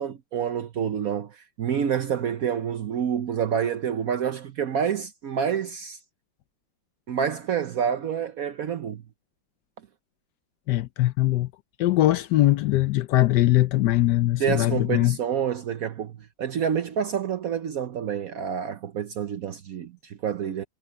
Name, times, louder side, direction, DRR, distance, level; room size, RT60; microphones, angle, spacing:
voice 1, 0.0-6.0 7.1-9.0 14.4-20.6, right 8 dB, 60° right, 1.2 m, -28 dB
voice 2, 10.7-11.5 11.8-15.2, left 15 dB, 80° left, 1.3 m, -21 dB
omnidirectional pair, 1.8 m